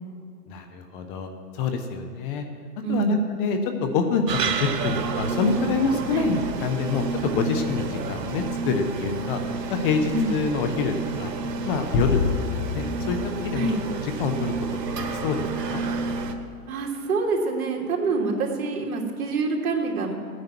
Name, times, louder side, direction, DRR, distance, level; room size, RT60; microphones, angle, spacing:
voice 1, 0.5-2.4 2.9-9.4 9.7-11.3 11.7-12.2 12.5-13.2 13.4-14.5 15.1-15.8, left 5 dB, 35° left, 6 dB, 1.2 m, -26 dB
sound 1, 4.3-16.3, right 4 dB, 85° right, 1.6 m, -30 dB
sound 2, 11.9-14.5, left 4 dB, 65° left, 1.6 m, -28 dB
voice 2, 16.7-20.1, right 3 dB, 60° right, -1 dB, 3.1 m, -26 dB
16.0 x 9.7 x 6.1 m, 2.3 s
hypercardioid pair, 150°, 48 cm